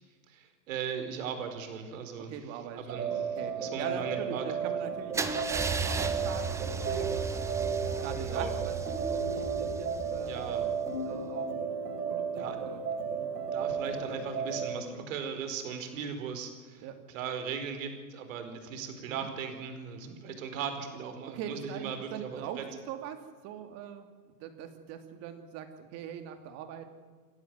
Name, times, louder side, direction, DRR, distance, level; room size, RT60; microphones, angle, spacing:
voice 1, 0.3-2.3 2.9-4.4 8.2-8.5 10.3-10.7 12.3-12.6 13.5-16.8 17.1-22.4, right 7 dB, 55° right, 7 dB, 4.8 m, -38 dB
voice 2, 2.2-3.1 3.4-6.5 6.8-7.2 8.0-8.8 9.0-10.4 11.0-11.5 12.0-12.8 13.2-13.3 15.9-16.1 16.8-17.0 19.1-19.3 19.9-20.2 21.3-24.1 24.4-26.9, right 9 dB, 30° right, 7 dB, 2.8 m, -42 dB
sound 1, 2.9-14.8, right 6 dB, 85° right, 5.5 m, -34 dB
Car / Engine starting / Idling, 5.1-11.0, right 4 dB, 5° right, 0.8 m, -35 dB
28.5 x 12.0 x 9.6 m, 1.5 s
hypercardioid pair, 140°, 47 cm